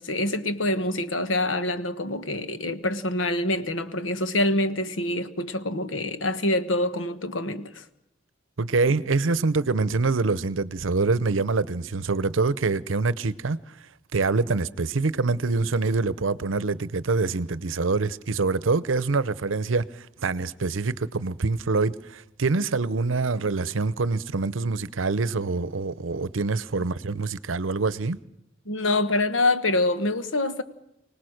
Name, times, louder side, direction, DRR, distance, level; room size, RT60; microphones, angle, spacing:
voice 1, 0.0-7.8 28.6-30.6, left 2 dB, 80° left, 1.4 m, -26 dB
voice 2, 8.6-13.7 14.1-28.2, right 3 dB, 90° right, 0.7 m, -25 dB
25.0 x 18.5 x 6.5 m
head